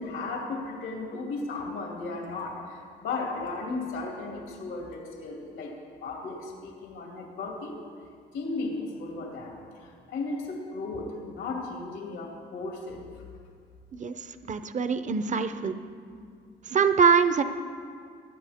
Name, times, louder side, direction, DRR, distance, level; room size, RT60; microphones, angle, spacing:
voice 1, 0.0-5.7 6.0-7.8 8.3-13.1, left 3 dB, 85° left, -1 dB, 2.7 m, -35 dB
voice 2, 14.5-15.8 16.7-17.4, right 6 dB, 40° right, 10 dB, 0.7 m, -23 dB
21.5 x 9.8 x 3.6 m, 2.2 s
cardioid pair, 90°, 20 cm